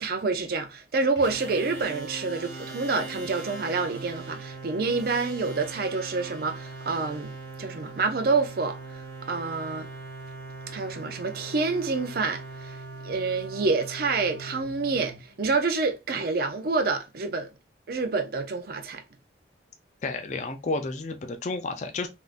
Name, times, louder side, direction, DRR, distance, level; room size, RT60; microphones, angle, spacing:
voice 1, 0.0-7.3 7.6-9.0 9.3-9.9 10.7-12.8 13.0-17.5 17.9-19.0, right 4 dB, 50° right, 0.5 m, -28 dB
sound 1, 1.2-15.7, right 3 dB, 70° right, 1.3 m, -40 dB
voice 2, 20.0-22.1, left 3 dB, 40° left, 0.4 m, -31 dB
3.6 x 2.5 x 2.4 m
head